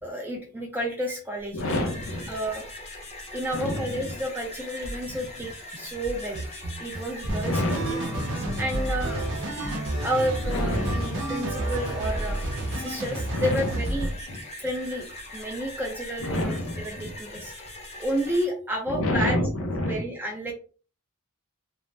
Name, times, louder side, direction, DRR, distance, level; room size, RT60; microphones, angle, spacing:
voice 1, 0.0-1.9 2.3-2.6 3.3-6.4 6.8-8.0 8.6-9.3 10.0-12.5 12.7-14.1 14.6-15.0 15.3-17.5 18.0-19.4 19.8-20.5, right 1 dB, 10° right, -1 dB, 0.4 m, -31 dB
sound 1, 1.4-18.4, left 1 dB, 30° left, 0.7 m, -41 dB
voice 2, 1.5-2.3 3.5-4.1 5.1-5.5 7.5-8.5 10.5-11.3 13.3-14.4 16.2-17.1 18.9-20.0, left 1 dB, 65° left, 5 dB, 0.6 m, -29 dB
sound 2, 4.8-5.2 5.7-12.9, right 1 dB, 90° right, 0.8 m, -35 dB
sound 3, 7.3-14.1, right 1 dB, 60° right, 0.7 m, -31 dB
2.6 x 2.0 x 3.1 m, 0.38 s
head